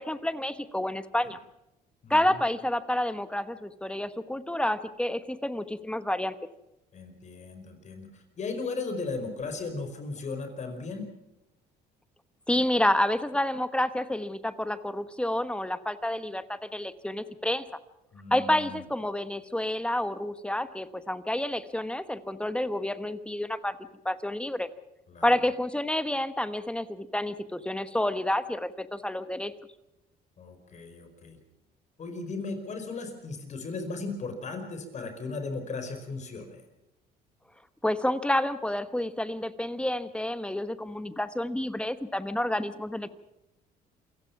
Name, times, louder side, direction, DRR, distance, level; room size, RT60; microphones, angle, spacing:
voice 1, 0.0-1.4 2.1-6.3 12.5-17.6 18.3-23.8 24.0-24.7 25.2-29.5 37.8-43.1, left 1 dB, 5° left, 12 dB, 1.2 m, -29 dB
voice 2, 2.0-2.4 6.9-11.1 18.1-18.8 25.1-25.3 30.4-31.4 32.0-36.6, left 3 dB, 45° left, 7 dB, 5.0 m, -36 dB
28.0 x 16.0 x 5.9 m, 0.93 s
cardioid pair, 110°, 17 cm